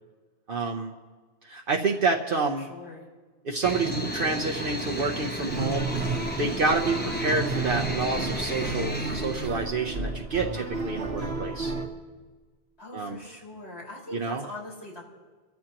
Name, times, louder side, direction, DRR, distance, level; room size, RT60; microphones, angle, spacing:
voice 1, 0.5-0.9 1.4-2.7 3.4-6.0 6.4-11.7 12.9-13.2 14.1-14.4, right 3 dB, 60° right, 1 dB, 1.0 m, -28 dB
voice 2, 2.6-3.1 12.8-15.0, left 2 dB, 80° left, -6 dB, 5.2 m, -42 dB
sound 1, 3.6-9.5, equal, 10° left, 1.0 m, -33 dB
sound 2, 5.5-11.9, right 3 dB, 75° right, 1.7 m, -32 dB
29.5 x 14.0 x 3.0 m, 1.4 s
omnidirectional pair, 1.1 m